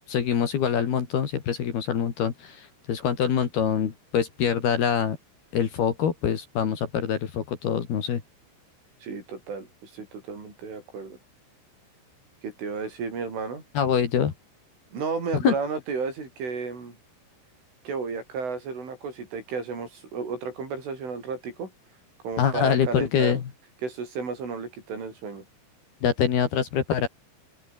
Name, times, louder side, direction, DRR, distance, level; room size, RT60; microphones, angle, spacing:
voice 1, 0.1-5.2 5.5-8.2 13.7-14.3 15.3-15.5 22.4-23.5 26.0-27.1, left 8 dB, 55° left, 4.2 m, -25 dB
voice 2, 9.0-11.2 12.4-13.6 14.9-17.0 17.9-21.7 22.2-23.4 23.8-25.5, right 5 dB, 80° right, 10.5 m, -33 dB
open air
omnidirectional pair, 5.5 m